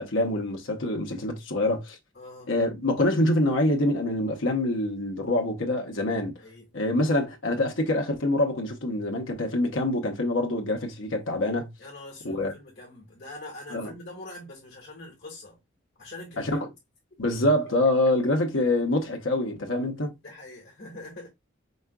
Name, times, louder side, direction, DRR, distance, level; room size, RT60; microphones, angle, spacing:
voice 1, 0.0-2.0 2.5-6.3 6.7-11.7 12.2-12.5 13.7-13.9 16.4-16.7 17.2-20.1, left 1 dB, 75° left, 1.0 m, -25 dB
voice 2, 2.1-2.5 6.4-6.7 11.8-15.6 16.0-16.6 17.8-17.9 20.2-21.3, left 2 dB, 50° left, 1.8 m, -43 dB
5.3 x 3.6 x 2.3 m
head